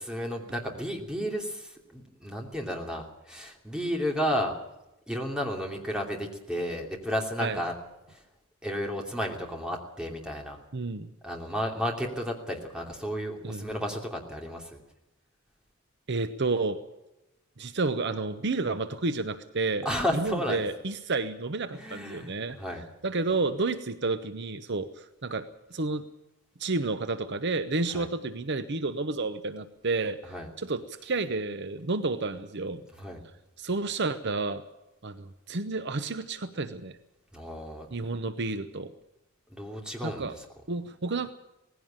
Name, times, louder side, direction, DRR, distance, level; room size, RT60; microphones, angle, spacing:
voice 1, 0.0-4.6 5.1-7.7 8.1-8.2 8.6-10.6 11.2-14.8 19.8-20.6 21.7-22.8 27.9-28.1 30.3-30.5 33.0-33.2 37.3-37.9 39.5-40.3, equal, 5° right, 1 dB, 2.9 m, -32 dB
voice 2, 10.7-11.1 13.4-13.7 16.1-16.8 17.6-22.6 23.0-26.1 26.6-30.2 30.6-32.8 33.6-34.6 35.0-37.0 37.9-38.9 40.0-40.3 40.7-41.3, right 3 dB, 55° right, 11 dB, 0.8 m, -30 dB
18.5 x 16.0 x 8.9 m, 0.95 s
head